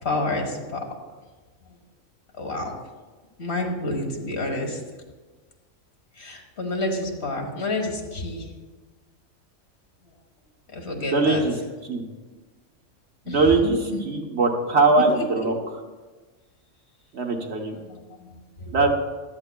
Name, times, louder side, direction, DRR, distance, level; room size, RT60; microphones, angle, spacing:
voice 1, 0.0-0.9 2.4-2.7 3.4-4.8 6.2-8.5 10.7-11.4 13.2-13.7 15.0-15.5 17.5-18.8, left 2 dB, 50° left, 2 dB, 1.6 m, -29 dB
voice 2, 11.1-11.5 11.9-12.0 13.3-13.8 14.0-15.5 17.1-17.8 18.7-18.9, right 3 dB, 55° right, 1 dB, 1.3 m, -21 dB
15.0 x 12.5 x 2.2 m, 1.3 s
omnidirectional pair, 1.4 m